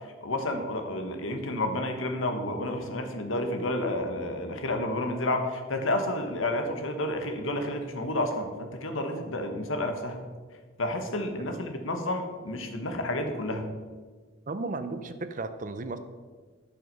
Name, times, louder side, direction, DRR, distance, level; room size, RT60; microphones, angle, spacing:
voice 1, 0.2-10.2 10.8-13.7, left 1 dB, 75° left, 6 dB, 1.2 m, -30 dB
voice 2, 14.5-16.0, right 3 dB, 40° right, 10 dB, 0.5 m, -35 dB
11.0 x 5.8 x 5.3 m, 1.5 s
head